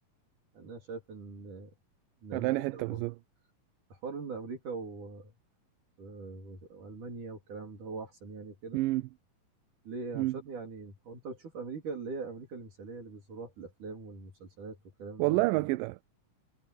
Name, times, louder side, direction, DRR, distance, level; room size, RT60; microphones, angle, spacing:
voice 1, 0.5-1.7 2.2-3.0 3.9-5.3 6.0-8.8 9.8-15.4, right 4 dB, 65° right, 4.9 m, -42 dB
voice 2, 2.3-3.2 8.7-9.1 10.2-10.4 15.2-16.0, right 20 dB, 80° right, 2.1 m, -29 dB
omnidirectional pair, 4.0 m